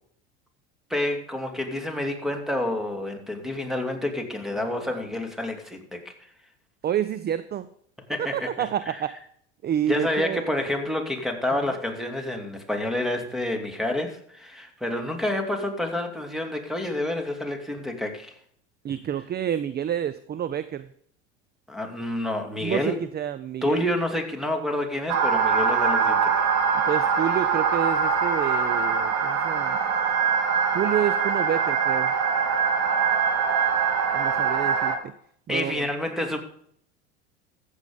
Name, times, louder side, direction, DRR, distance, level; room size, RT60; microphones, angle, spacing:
voice 1, 0.9-6.1 8.1-9.0 9.9-18.3 21.7-23.0 23.6-26.4 35.5-36.4, left 1 dB, ahead, 5 dB, 3.0 m, -29 dB
voice 2, 6.8-7.7 8.3-9.1 9.6-10.6 18.8-20.9 22.6-24.0 26.7-29.8 30.7-32.1 34.1-35.1 35.5-35.9, right 10 dB, 30° right, 14 dB, 0.7 m, -29 dB
sound 1, 25.1-35.0, right 6 dB, 50° right, 2.6 m, -23 dB
14.5 x 8.2 x 5.2 m, 0.64 s
hypercardioid pair, 80°, 35 cm